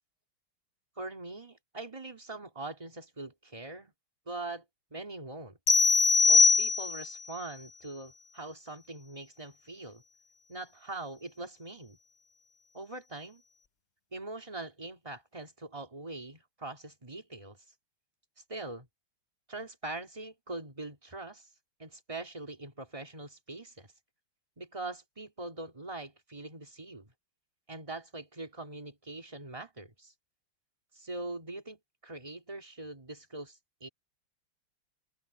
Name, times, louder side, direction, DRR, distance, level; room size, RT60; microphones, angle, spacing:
voice 1, 1.0-3.9 4.3-4.6 4.9-5.6 6.2-10.0 10.5-12.0 12.7-13.4 14.1-17.6 18.5-18.9 19.5-21.5 21.8-23.9 24.6-27.1 27.7-30.1 30.9-33.9, right 2 dB, 15° right, 3.0 m, -42 dB
sound 1, 5.7-7.2, left 4 dB, 85° left, 0.4 m, -22 dB
open air
omnidirectional pair, 2.2 m